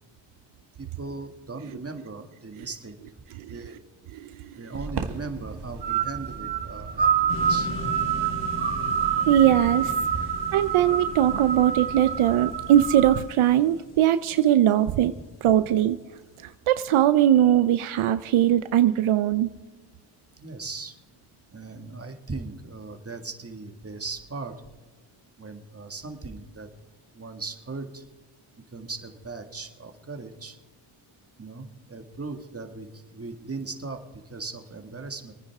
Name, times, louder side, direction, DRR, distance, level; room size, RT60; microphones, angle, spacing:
voice 1, 0.8-3.0 3.5-3.8 4.6-7.7 10.1-10.3 20.4-21.0 21.5-24.6 25.4-26.7 27.1-28.1 28.7-30.6 31.4-35.3, right 3 dB, 30° right, 6 dB, 1.9 m, -38 dB
sound 1, 4.7-13.2, right 7 dB, 55° right, 1.7 m, -27 dB
sound 2, 7.3-15.3, left 2 dB, 75° left, 4.8 m, -39 dB
voice 2, 9.3-9.9 10.5-15.1 15.4-16.0 16.7-19.5, right 11 dB, 80° right, 12 dB, 0.7 m, -20 dB
27.0 x 9.9 x 3.6 m, 1.3 s
cardioid pair, 65°, 50 cm